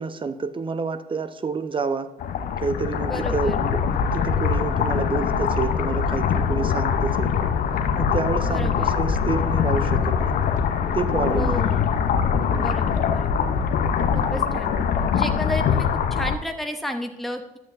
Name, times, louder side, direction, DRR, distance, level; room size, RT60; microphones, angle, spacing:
voice 1, 0.0-2.1 2.6-3.8 4.1-7.3 8.0-10.3 10.9-11.6 12.5-12.7 14.3-14.4, right 4 dB, 30° right, 11 dB, 0.8 m, -28 dB
sound 1, 2.2-16.4, left 7 dB, 50° left, 0.9 m, -23 dB
voice 2, 3.1-3.6 8.4-8.9 11.3-11.8 12.6-13.3 14.1-14.7 15.1-17.6, left 1 dB, ahead, 5 dB, 1.1 m, -32 dB
13.5 x 10.5 x 2.7 m, 0.91 s
figure-of-eight pair, 50°, 18 cm